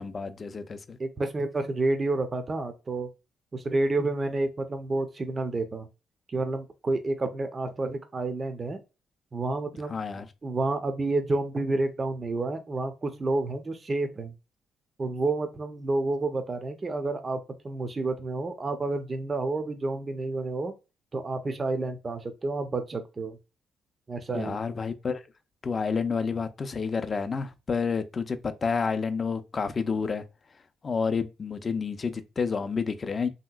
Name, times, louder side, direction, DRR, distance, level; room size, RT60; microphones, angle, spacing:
voice 1, 0.0-1.0 9.9-10.3 24.3-25.2 25.6-30.2 30.8-33.3, left 5 dB, 35° left, 0.4 m, -29 dB
voice 2, 1.0-3.1 3.5-5.9 6.3-8.8 9.3-10.0 10.4-14.3 15.0-17.4 17.6-20.7 21.1-23.4 24.1-24.6, right 2 dB, 30° right, 0.5 m, -29 dB
3.1 x 2.8 x 2.2 m
cardioid pair, 90°, 0 cm